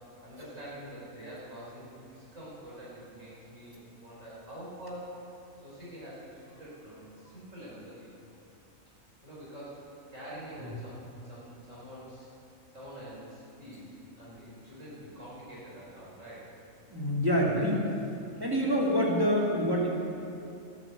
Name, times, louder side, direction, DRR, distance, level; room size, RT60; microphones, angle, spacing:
voice 1, 0.2-5.1 5.6-8.1 9.2-12.3 12.7-16.5, right 1 dB, 70° right, -8 dB, 4.5 m, -46 dB
voice 2, 16.9-17.8 18.4-19.9, equal, 15° right, -5 dB, 2.9 m, -26 dB
14.0 x 10.5 x 8.1 m, 2.6 s
omnidirectional pair, 1.4 m